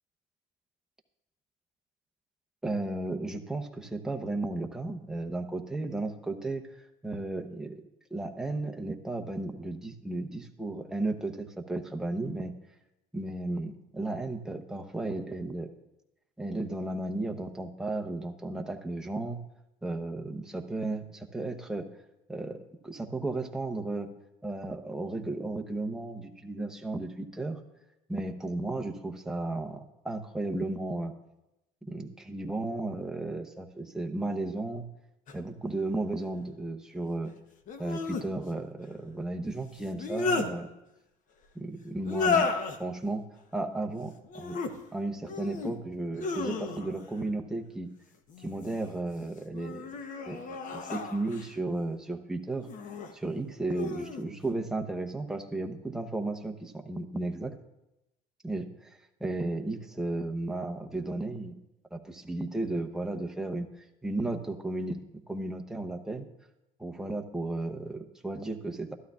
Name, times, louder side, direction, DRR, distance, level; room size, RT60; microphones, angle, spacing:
voice 1, 2.6-7.8 8.1-12.5 13.1-15.7 16.4-19.4 19.8-21.9 22.3-22.6 22.8-24.1 24.4-27.6 28.1-31.1 31.8-34.8 35.3-37.3 37.8-40.7 41.5-42.5 42.8-43.2 43.5-44.6 44.9-47.9 48.4-49.9 50.3-52.7 53.1-57.5 58.4-58.9 59.2-61.5 61.9-63.7 64.0-66.2 66.8-68.9, right 2 dB, 5° right, 3 dB, 0.8 m, -34 dB
sound 1, 35.3-35.4 37.7-38.3 39.8-40.5 42.0-42.8 44.3-44.7 45.2-45.8 46.2-47.1 48.3-48.9 49.5-51.5 52.6-53.1 53.7-54.2, left 4 dB, 45° left, 0.9 m, -33 dB
12.5 x 11.5 x 2.4 m, 0.90 s
cardioid pair, 130°, 18 cm